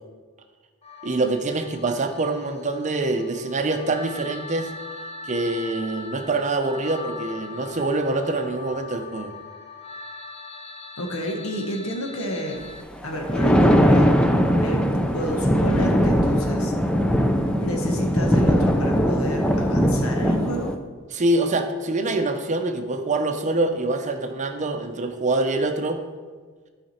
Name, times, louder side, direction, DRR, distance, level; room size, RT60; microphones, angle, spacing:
sound 1, 0.8-12.8, left 3 dB, 30° left, 0.8 m, -40 dB
voice 1, 1.0-4.7 5.2-9.3 21.1-26.0, right 2 dB, 35° right, 6 dB, 0.7 m, -25 dB
voice 2, 11.0-12.6 13.0-14.1 14.6-14.9 15.1-16.7 17.6-20.7, equal, 75° left, 2 dB, 1.4 m, -30 dB
Thunder, 13.0-20.8, equal, 5° left, 0.5 m, -20 dB
12.0 x 5.0 x 4.3 m, 1.5 s
head